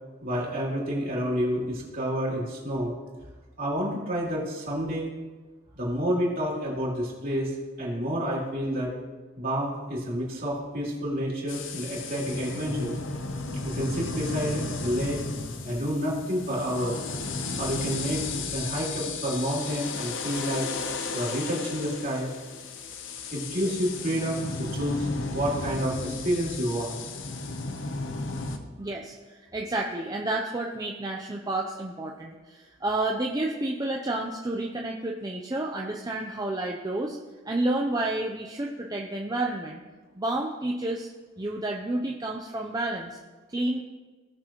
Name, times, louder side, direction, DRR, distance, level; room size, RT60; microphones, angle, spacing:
voice 1, 0.2-2.9 3.6-5.1 5.7-7.5 7.8-8.9 9.4-12.9 13.6-15.2 15.6-16.9 17.6-18.2 18.5-20.6 21.1-22.3 23.3-27.0, equal, 45° right, -5 dB, 3.1 m, -29 dB
sound 1, 11.5-28.6, left 3 dB, 70° left, 0.8 m, -34 dB
voice 2, 28.8-37.2 37.5-39.8 40.1-41.1 41.4-43.2 43.5-43.8, right 2 dB, 20° right, 0 dB, 0.5 m, -30 dB
17.5 x 6.5 x 3.0 m, 1.3 s
head